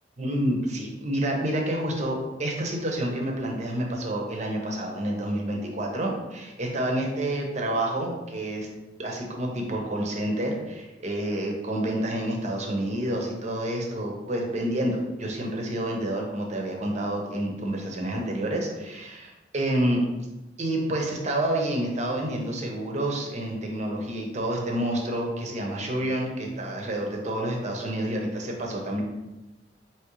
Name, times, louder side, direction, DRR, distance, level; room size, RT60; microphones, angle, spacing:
voice 1, 0.2-8.7 9.0-20.0 20.6-29.0, right 1 dB, 40° right, 1 dB, 0.8 m, -29 dB
4.7 x 3.0 x 3.1 m, 1.0 s
head